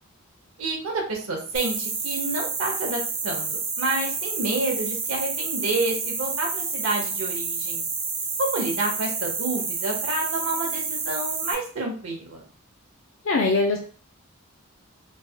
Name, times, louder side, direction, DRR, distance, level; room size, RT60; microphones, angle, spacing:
voice 1, 0.6-7.8 8.4-12.4, right 2 dB, 70° right, 0 dB, 0.8 m, -29 dB
sound 1, 1.5-11.5, right 4 dB, 25° right, 0.4 m, -29 dB
voice 2, 13.2-13.8, left 3 dB, 60° left, 1 dB, 0.4 m, -21 dB
3.1 x 2.0 x 2.8 m, 0.41 s
head